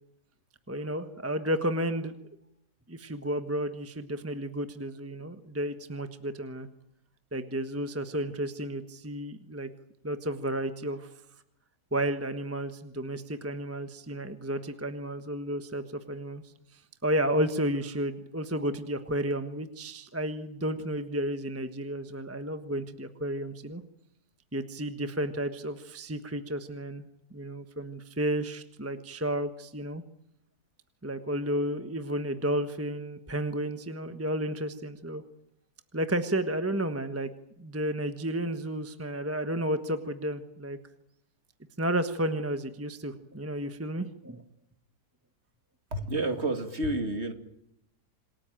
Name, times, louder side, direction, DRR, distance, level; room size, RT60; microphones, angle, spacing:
voice 1, 0.7-2.1 2.9-6.7 7.3-9.7 10.0-11.1 11.9-23.8 24.5-27.0 27.3-30.0 31.0-35.2 35.9-37.3 37.6-40.8 41.8-44.5, right 1 dB, 10° right, 8 dB, 1.1 m, -32 dB
voice 2, 45.9-47.3, right 2 dB, 40° right, 6 dB, 2.7 m, -29 dB
27.5 x 18.5 x 9.0 m, 0.80 s
omnidirectional pair, 1.9 m